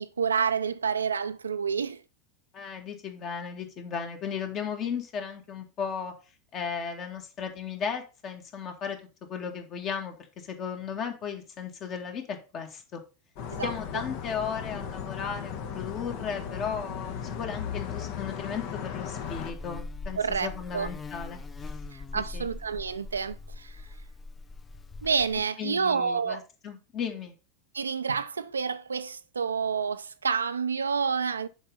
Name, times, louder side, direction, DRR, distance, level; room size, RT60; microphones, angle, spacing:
voice 1, 0.0-2.0 13.5-13.7 20.2-20.9 21.9-23.8 25.0-26.5 27.7-31.5, right 6 dB, 85° right, 0.5 m, -29 dB
voice 2, 2.5-6.1 6.5-9.0 9.3-13.0 13.6-21.8 22.1-22.5 25.6-27.3, left 7 dB, 40° left, 2.2 m, -35 dB
sound 1, 13.4-19.5, left 7 dB, 60° left, 1.4 m, -36 dB
Buzz, 19.3-25.4, left 3 dB, 20° left, 0.7 m, -41 dB
7.0 x 5.2 x 5.5 m
hypercardioid pair, 85°, 0 cm